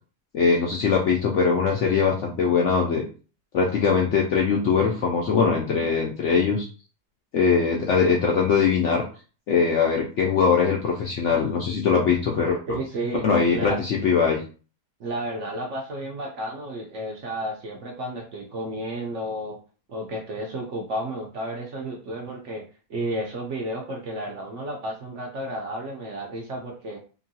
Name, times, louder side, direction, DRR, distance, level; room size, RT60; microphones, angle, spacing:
voice 1, 0.3-3.0 3.5-6.7 7.3-9.0 9.5-12.8 13.2-14.4, left 5 dB, 70° left, -1 dB, 0.7 m, -21 dB
voice 2, 12.7-13.2 13.5-13.8 15.0-19.6 19.9-22.6 22.9-27.0, right 1 dB, 65° right, -1 dB, 0.8 m, -32 dB
2.9 x 2.6 x 2.7 m, 0.37 s
omnidirectional pair, 1.7 m